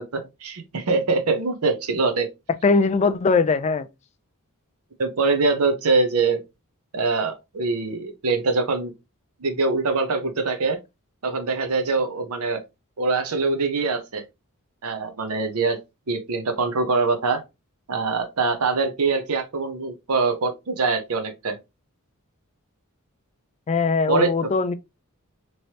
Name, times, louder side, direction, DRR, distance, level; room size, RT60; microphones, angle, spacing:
voice 1, 0.0-2.3 5.0-6.4 6.9-8.9 9.4-10.8 11.2-12.6 13.0-14.2 14.8-15.8 16.1-17.4 17.9-21.6 24.1-24.3, right 3 dB, 80° right, 0.7 m, -23 dB
voice 2, 2.6-3.9 23.7-24.7, left 4 dB, 30° left, 0.3 m, -20 dB
3.1 x 3.0 x 2.8 m
head